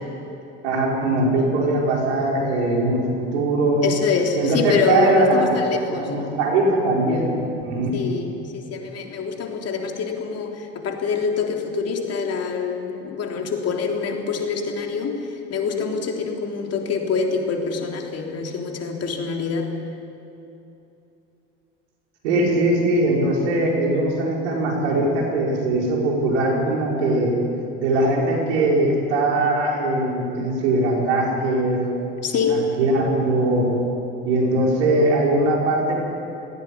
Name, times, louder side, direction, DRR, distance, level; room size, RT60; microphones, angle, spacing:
voice 1, 0.6-3.9 4.3-5.5 5.9-7.3 7.6-7.9 22.2-27.3 27.8-31.8 32.5-33.8 34.2-35.9, right 2 dB, 80° right, -1 dB, 5.2 m, -21 dB
voice 2, 3.8-6.1 7.9-19.7 32.2-32.7, left 5 dB, 45° left, 2 dB, 3.6 m, -25 dB
19.5 x 16.0 x 9.7 m, 2.9 s
hypercardioid pair, 75°, 34 cm